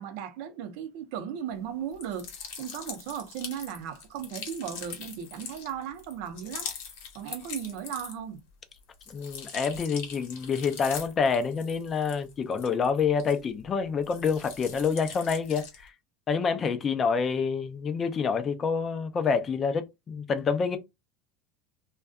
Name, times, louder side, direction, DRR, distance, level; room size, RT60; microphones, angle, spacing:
voice 1, 0.0-2.3 2.6-6.7 7.1-8.4, right 9 dB, 70° right, 0.6 m, -36 dB
sound 1, 1.9-8.4 8.8-13.7 14.0-15.9, left 6 dB, 80° left, 0.9 m, -42 dB
voice 2, 9.1-15.9 16.3-20.8, left 5 dB, 30° left, 0.4 m, -27 dB
2.5 x 2.2 x 2.3 m
supercardioid pair, 110°, 0 cm